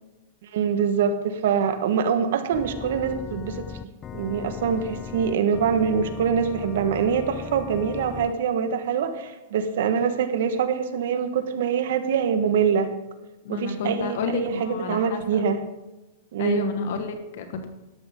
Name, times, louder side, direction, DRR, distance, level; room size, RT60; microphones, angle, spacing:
voice 1, 0.4-12.9 13.5-15.6 16.3-16.7, right 7 dB, 70° right, 9 dB, 1.4 m, -24 dB
Organ, 2.5-8.3, left 7 dB, 25° left, 0.5 m, -38 dB
voice 2, 13.4-15.4 16.4-17.7, left 4 dB, 65° left, 6 dB, 1.5 m, -30 dB
12.5 x 12.0 x 3.7 m, 1.1 s
hypercardioid pair, 135°, 0 cm